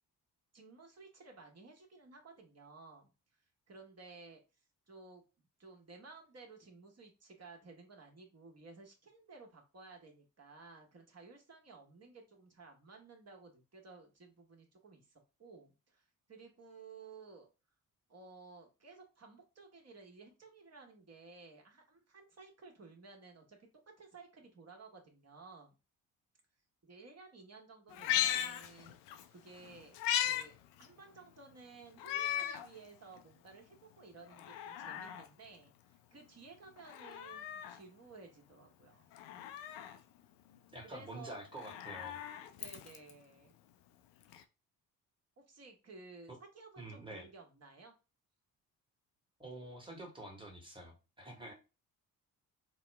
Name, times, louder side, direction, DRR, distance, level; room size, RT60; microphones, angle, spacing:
voice 1, 0.5-3.1 3.7-4.4 4.9-17.5 18.1-23.7 24.0-25.8 26.8-29.0 29.3-30.0 30.2-39.1 40.8-41.4 42.6-43.5 45.4-47.9, right 4 dB, 35° right, 2 dB, 1.2 m, -55 dB
Meow, 27.9-29.2 29.6-30.5 30.8-30.9 32.0-32.7 33.2-33.3 34.3-35.3 36.8-37.8 39.1-40.0 41.4-43.1 44.3-44.4, left 11 dB, 70° left, 0.5 m, -37 dB
voice 2, 40.7-42.2 46.3-46.4 46.8-47.3 49.4-51.5, right 1 dB, 10° right, 1 dB, 1.4 m, -47 dB
2.9 x 2.1 x 3.3 m, 0.30 s
hypercardioid pair, 45°, 44 cm